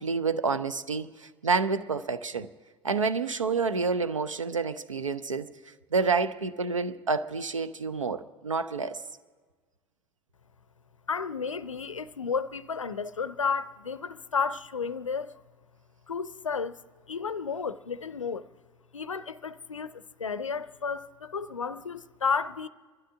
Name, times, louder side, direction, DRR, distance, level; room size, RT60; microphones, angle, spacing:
voice 1, 0.0-2.5 2.8-5.5 5.9-9.0, right 4 dB, 85° right, 0.6 m, -28 dB
voice 2, 11.1-15.4 16.1-16.8 17.1-18.5 18.9-22.7, left 5 dB, 90° left, 0.5 m, -32 dB
28.5 x 12.5 x 3.6 m
figure-of-eight pair, 70°, 16 cm